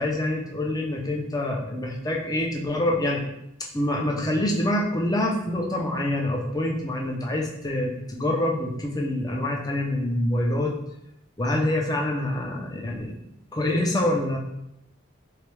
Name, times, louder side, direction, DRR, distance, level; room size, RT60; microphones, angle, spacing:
voice 1, 0.0-3.2 3.7-10.7 11.4-13.1 13.5-14.4, left 1 dB, 20° left, 0 dB, 0.6 m, -26 dB
3.5 x 3.2 x 3.3 m, 0.81 s
head